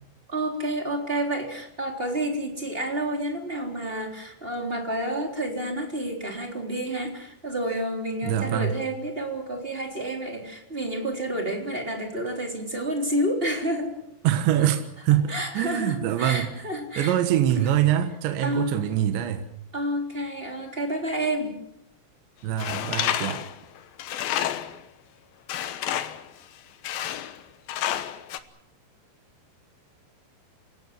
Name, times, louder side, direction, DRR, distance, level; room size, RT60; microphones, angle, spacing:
voice 1, 0.3-14.0 15.3-17.2 18.4-18.8 19.7-21.6, right 1 dB, 15° right, 2 dB, 3.2 m, -29 dB
voice 2, 8.2-8.8 14.2-16.5 17.0-19.5 22.4-23.4, right 11 dB, 75° right, 7 dB, 3.6 m, -24 dB
Tools, 22.6-24.8 25.5-26.3 26.8-27.4 27.7-28.4, left 11 dB, 70° left, 2.4 m, -29 dB
27.5 x 17.5 x 7.6 m, 0.76 s
omnidirectional pair, 5.3 m